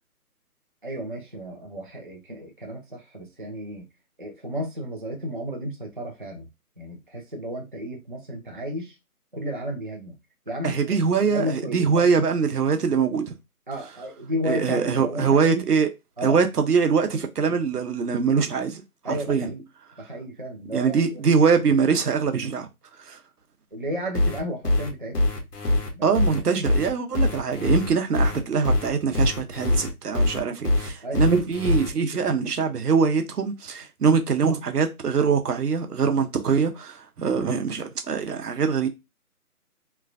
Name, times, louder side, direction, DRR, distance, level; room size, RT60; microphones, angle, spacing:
voice 1, 0.8-3.9 4.2-6.5 6.8-9.0 9.3-10.2 10.5-12.0 13.7-15.6 16.2-16.4 19.0-19.6 20.0-21.3 23.7-25.2 25.9-26.2 31.0-31.2, equal, 35° right, 0.4 m, -33 dB
voice 2, 10.6-13.3 14.4-15.9 16.2-19.5 20.7-22.7 23.0-23.2 26.0-38.9, right 5 dB, 90° right, 0.8 m, -23 dB
sound 1, 24.1-31.9, left 1 dB, 90° left, 1.1 m, -23 dB
3.1 x 2.2 x 2.4 m
figure-of-eight pair, 165°, 45 cm